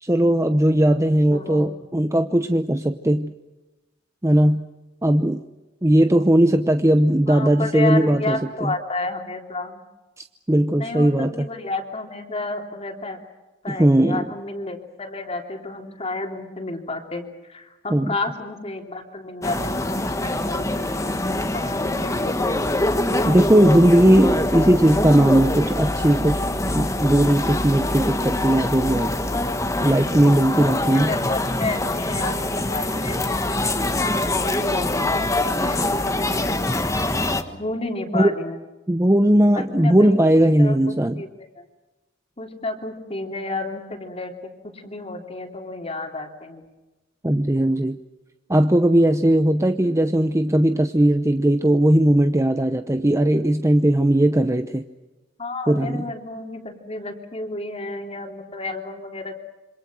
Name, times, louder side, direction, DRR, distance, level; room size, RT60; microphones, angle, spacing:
voice 1, 0.0-3.3 4.2-4.7 5.0-5.4 5.8-8.7 10.2-11.4 13.7-14.3 17.9-18.1 23.2-29.1 29.8-31.1 38.1-38.3 38.9-41.2 47.2-48.0 48.5-54.8 55.7-56.0, right 1 dB, 15° right, 8 dB, 0.8 m, -18 dB
voice 2, 1.3-1.7 7.0-9.8 10.8-13.2 13.6-22.7 24.7-24.9 30.8-35.1 35.4-36.9 37.5-38.6 39.5-40.2 40.6-41.7 42.4-46.6 55.4-59.3, left 2 dB, 30° left, 2 dB, 3.1 m, -31 dB
sound 1, 19.4-37.4, left 1 dB, 15° left, 1.5 m, -24 dB
27.5 x 25.5 x 6.2 m, 1.1 s
head